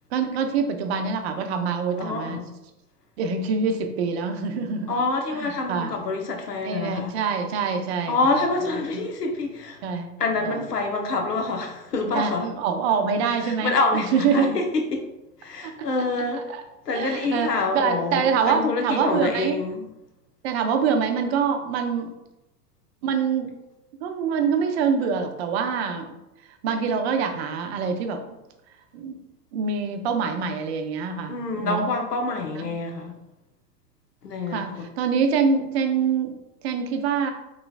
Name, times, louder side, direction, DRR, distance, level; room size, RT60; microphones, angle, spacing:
voice 1, 0.1-2.4 3.2-4.9 5.4-5.9 6.6-8.2 9.8-10.2 12.1-14.5 15.6-15.7 16.5-16.6 16.9-17.5 17.7-19.6 20.4-22.1 23.0-23.5 24.0-26.1 26.6-28.2 28.9-29.2 29.5-31.9 32.5-32.7 34.5-36.4 36.6-37.3, right 6 dB, 45° right, 5 dB, 0.6 m, -25 dB
voice 2, 2.0-2.5 4.9-7.2 8.1-9.8 10.2-12.5 13.4-15.0 15.4-16.6 16.8-19.9 31.3-33.2 34.2-34.9, left 3 dB, 80° left, 3 dB, 0.9 m, -26 dB
3.8 x 3.1 x 2.3 m, 0.95 s
figure-of-eight pair, 100°, 47 cm